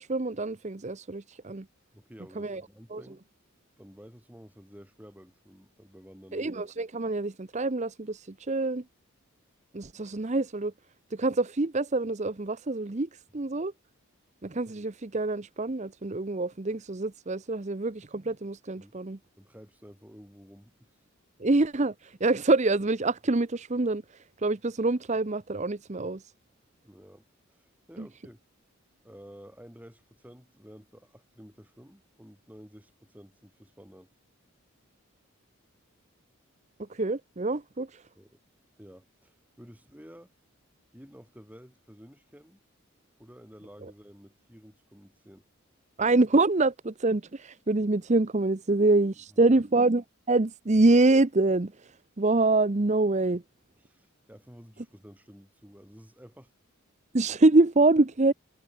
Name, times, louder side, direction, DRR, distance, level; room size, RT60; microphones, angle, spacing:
voice 1, 0.0-1.7 2.4-2.6 2.9-3.0 6.3-8.8 9.7-10.7 11.1-13.7 14.4-19.2 21.4-26.3 28.0-28.1 36.9-38.0 46.0-53.4 57.1-58.3, right 2 dB, 35° right, 0.7 m, -25 dB
voice 2, 1.9-3.2 3.8-6.5 18.8-18.9 19.4-21.0 26.8-28.4 29.0-34.1 38.2-38.4 38.8-40.3 40.9-42.6 43.2-45.4 49.3-49.6 53.8-56.5, equal, 5° right, 6.9 m, -51 dB
head